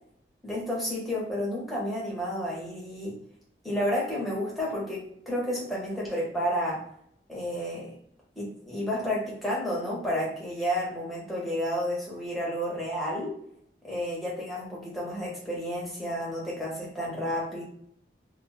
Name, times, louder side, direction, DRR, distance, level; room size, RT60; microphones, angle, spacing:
voice 1, 0.4-3.2 3.6-6.9 7.3-7.9 8.4-13.4 13.8-17.6, equal, ahead, -6 dB, 0.8 m, -31 dB
2.1 x 2.0 x 3.0 m, 0.68 s
head